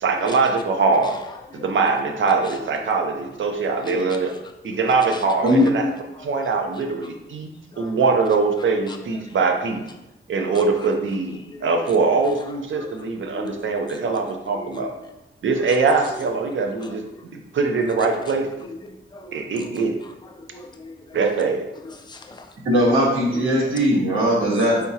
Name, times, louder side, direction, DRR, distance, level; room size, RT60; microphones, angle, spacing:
voice 1, 0.0-1.2 1.5-4.3 4.6-5.9 6.2-9.8 10.3-14.9 15.4-17.0 17.3-18.5 19.3-19.9 21.1-21.6, right 4 dB, 70° right, 4 dB, 0.6 m, -22 dB
voice 2, 1.0-1.7 2.2-2.7 3.4-4.4 4.6-5.7 6.1-6.3 6.8-7.2 7.7-8.0 8.9-9.4 10.4-10.9 11.3-11.9 12.4-13.0 13.3-13.6 13.9-14.2 14.5-15.1 15.6-15.8 16.5-17.2 18.0-18.3 18.7-21.2 21.8-22.5 23.3-23.8 24.5-24.6, left 3 dB, 20° left, 5 dB, 0.4 m, -41 dB
voice 3, 22.6-24.9, equal, 90° right, -5 dB, 1.5 m, -19 dB
4.6 x 3.5 x 2.8 m, 0.93 s
wide cardioid pair, 170°, 21 cm